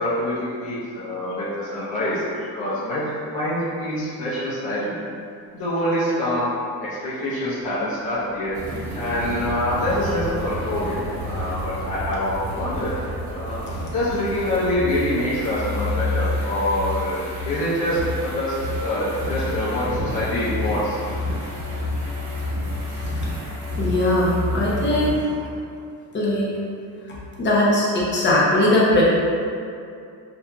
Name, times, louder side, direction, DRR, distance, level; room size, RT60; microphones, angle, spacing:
voice 1, 0.0-5.0 5.5-6.5 6.8-8.5 8.9-13.6 13.9-17.2 17.4-21.0, left 1 dB, 65° left, -10 dB, 0.9 m, -25 dB
Aircraft, 8.0-18.8 19.2-19.3, right 1 dB, 65° right, 1.2 m, -35 dB
sound 1, 8.5-25.1, left 2 dB, 50° right, 1.1 m, -30 dB
voice 2, 23.8-25.1 26.1-26.5 27.4-29.0, left 1 dB, 30° left, -6 dB, 0.8 m, -20 dB
5.5 x 2.8 x 2.2 m, 2.4 s
cardioid pair, 155°, 39 cm